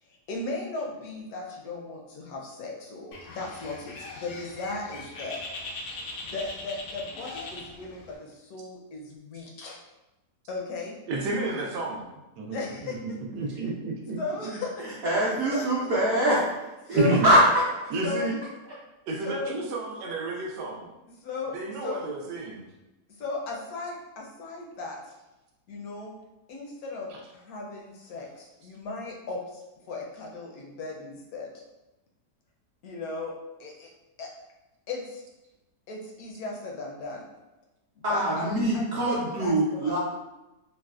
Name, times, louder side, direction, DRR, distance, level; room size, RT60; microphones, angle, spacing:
voice 1, 0.3-5.4 6.2-9.8 10.5-11.0 12.5-13.0 14.2-15.0 15.5-15.7 16.9-17.2 18.0-18.3 19.2-19.5 21.2-21.6 21.8-22.0 23.2-25.1 25.7-26.1 26.5-29.6 29.9-31.5 32.8-33.3 33.6-33.9 34.2-34.3 34.9-35.2 35.9-37.3 38.1-40.0, left 3 dB, 70° left, -1 dB, 1.0 m, -36 dB
Bird, 3.1-8.2, left 2 dB, 90° left, 1.2 m, -40 dB
voice 2, 11.1-12.0 12.4-14.6 16.9-17.3 17.9-18.4 19.1-20.9 21.5-22.7 27.1-27.2, right 2 dB, 80° right, -1 dB, 1.2 m, -31 dB
voice 3, 15.0-16.5 16.9-17.4 38.0-40.0, right 1 dB, 60° right, -8 dB, 1.0 m, -23 dB
3.9 x 2.1 x 2.3 m, 0.99 s
omnidirectional pair, 1.8 m